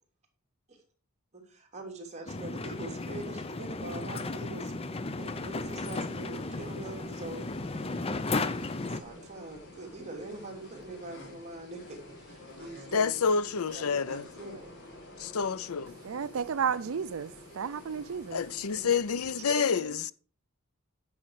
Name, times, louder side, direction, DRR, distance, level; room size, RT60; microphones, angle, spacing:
voice 1, 1.3-4.7 5.1-7.4 8.8-13.2 13.7-14.8 18.7-19.0 19.5-19.9, right 2 dB, 30° right, 3.0 m, -43 dB
sound 1, 2.3-9.0, left 3 dB, 25° left, 0.6 m, -34 dB
sound 2, 5.2-19.5, left 1 dB, 55° left, 4.3 m, -50 dB
voice 2, 12.9-14.2 15.2-16.0 18.3-20.1, left 5 dB, 80° left, 0.6 m, -28 dB
voice 3, 16.0-18.4, right 6 dB, 65° right, 0.4 m, -32 dB
10.5 x 7.3 x 4.9 m
head